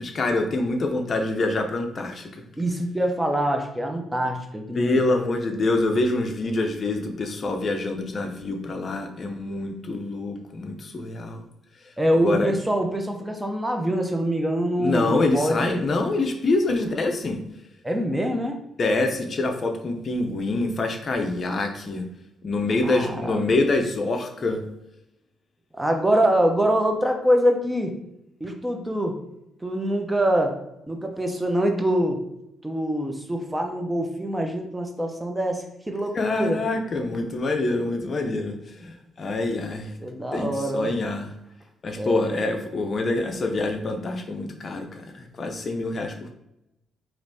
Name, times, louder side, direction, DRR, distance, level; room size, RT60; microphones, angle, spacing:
voice 1, 0.0-2.4 4.8-11.4 12.2-12.5 14.8-17.4 18.8-22.0 22.4-24.6 36.1-38.5 38.8-39.9 40.3-41.3 41.8-46.3, left 2 dB, 45° left, 5 dB, 0.6 m, -25 dB
voice 2, 2.6-5.0 12.0-15.8 17.8-18.6 22.8-23.4 25.7-27.9 28.4-29.2 29.6-30.6 30.9-32.2 32.6-36.6 40.0-40.9 42.0-42.5, right 1 dB, 10° right, 3 dB, 0.7 m, -24 dB
5.1 x 3.0 x 2.7 m, 0.83 s
cardioid pair, 90°, 0 cm